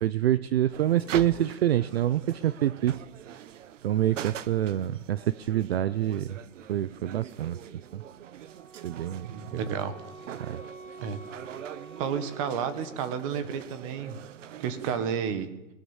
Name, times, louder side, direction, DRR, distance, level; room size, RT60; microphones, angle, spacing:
voice 1, 0.0-3.0 3.8-6.4 6.7-7.6 7.9-8.0 8.8-9.6 10.4-10.6, right 12 dB, 50° right, 17 dB, 0.6 m, -26 dB
sound 1, 0.7-15.0, right 10 dB, 65° right, 1.1 m, -43 dB
Wind instrument woodwind instrument, 8.5-13.3, right 4 dB, 80° right, 3.3 m, -48 dB
voice 2, 9.3-9.9 11.0-11.2 12.0-14.2 14.6-15.5, right 7 dB, 25° right, 11 dB, 1.5 m, -31 dB
21.0 x 18.0 x 7.3 m, 1.0 s
supercardioid pair, 180°, 40 cm